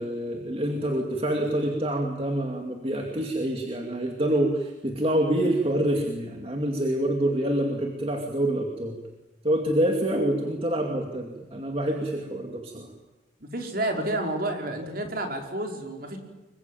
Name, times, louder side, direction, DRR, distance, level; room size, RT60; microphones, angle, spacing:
voice 1, 0.0-9.0 9.4-12.9, right 1 dB, 30° right, 2 dB, 2.4 m, -26 dB
voice 2, 13.4-16.2, right 1 dB, 50° right, 3 dB, 4.9 m, -30 dB
26.0 x 23.0 x 9.2 m, 1.1 s
head